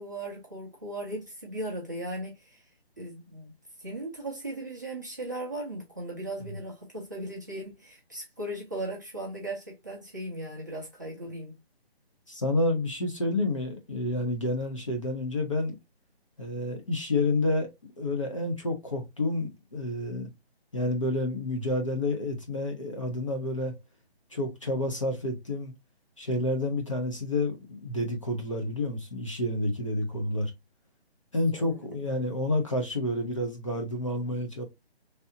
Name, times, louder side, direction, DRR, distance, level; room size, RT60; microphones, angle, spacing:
voice 1, 0.0-2.6 3.0-3.5 3.8-11.5 31.5-31.8, right 1 dB, 20° right, 0.5 m, -37 dB
voice 2, 12.3-15.8 16.4-20.3 20.7-23.7 24.3-25.7 26.2-30.5 31.3-34.6, left 2 dB, 30° left, 0.5 m, -29 dB
3.2 x 2.8 x 2.6 m
hypercardioid pair, 165°, 32 cm